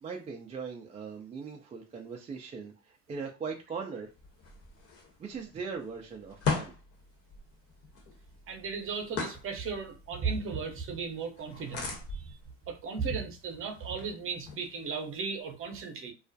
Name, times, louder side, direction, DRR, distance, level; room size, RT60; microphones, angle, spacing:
voice 1, 0.0-4.1 5.2-6.7, right 5 dB, 20° right, 0.3 m, -40 dB
sound 1, 4.0-15.4, left 5 dB, 40° left, 0.9 m, -41 dB
voice 2, 8.5-12.4 12.7-16.1, right 5 dB, 35° right, 0.7 m, -36 dB
2.4 x 2.0 x 2.6 m
hypercardioid pair, 80°, 38 cm